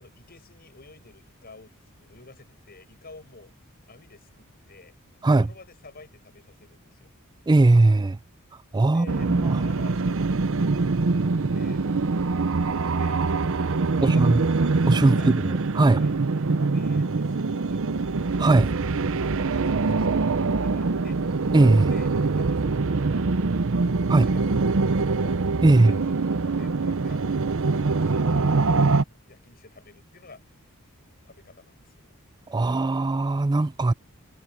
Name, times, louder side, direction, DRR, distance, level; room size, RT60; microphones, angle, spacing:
voice 1, 0.0-3.5 3.9-5.0 5.3-7.1 8.9-11.8 12.9-13.2 13.9-14.3 15.0-15.3 15.8-18.2 19.5-21.2 21.9-23.6 24.1-25.4 25.8-27.2 27.6-30.4 31.2-32.1, left 3 dB, 45° left, 7.9 m, -50 dB
voice 2, 7.5-8.2 8.7-9.6 14.0-14.4 14.9-16.0 18.4-18.7 21.5-21.9 24.1-24.3 25.6-25.9 32.5-33.9, right 2 dB, 20° right, 0.4 m, -19 dB
sound 1, 9.1-29.0, right 3 dB, 65° right, 0.7 m, -24 dB
head